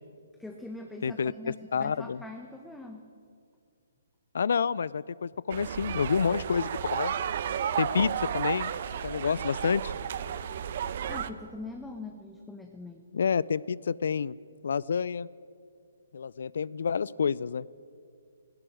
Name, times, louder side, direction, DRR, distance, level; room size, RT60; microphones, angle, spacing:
voice 1, 0.4-3.0 11.1-13.0, left 2 dB, 5° left, 3 dB, 1.3 m, -42 dB
voice 2, 1.0-2.2 4.3-7.1 7.8-9.9 13.1-14.3 14.6-15.3 16.1-17.7, left 6 dB, 65° left, 22 dB, 0.5 m, -29 dB
sound 1, 5.5-11.3, right 9 dB, 50° right, 0.9 m, -32 dB
17.5 x 17.0 x 9.3 m, 2.3 s
figure-of-eight pair, 140°, 0 cm